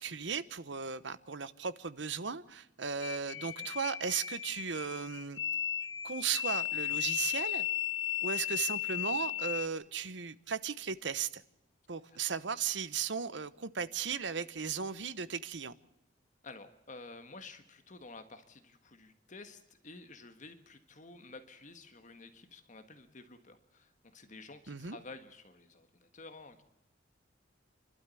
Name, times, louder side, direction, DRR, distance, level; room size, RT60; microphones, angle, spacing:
voice 1, 0.0-5.4 6.0-7.7 8.2-11.4 11.9-15.7 24.7-25.0, right 6 dB, 70° right, 15 dB, 1.0 m, -36 dB
sound 1, 3.0-9.7, left 11 dB, 85° left, 1.0 m, -35 dB
voice 2, 16.4-26.6, left 3 dB, 40° left, 8 dB, 1.5 m, -51 dB
29.5 x 12.5 x 8.4 m, 0.85 s
head